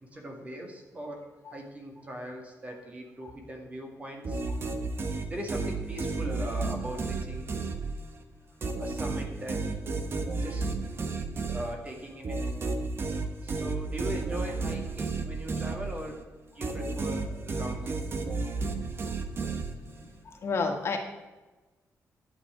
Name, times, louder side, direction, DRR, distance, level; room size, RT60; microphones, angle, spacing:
voice 1, 0.0-1.2 1.5-4.4 5.3-7.5 8.8-9.6 10.4-10.7 11.5-12.4 13.4-16.2 16.5-18.0, equal, 25° right, 2 dB, 1.9 m, -40 dB
sound 1, 4.2-8.2 8.6-16.2 16.6-20.1, right 3 dB, 45° right, 1.2 m, -32 dB
voice 2, 20.0-21.0, left 4 dB, 50° left, 3 dB, 1.7 m, -32 dB
11.5 x 9.0 x 4.9 m, 1.2 s
wide cardioid pair, 155°, 6 cm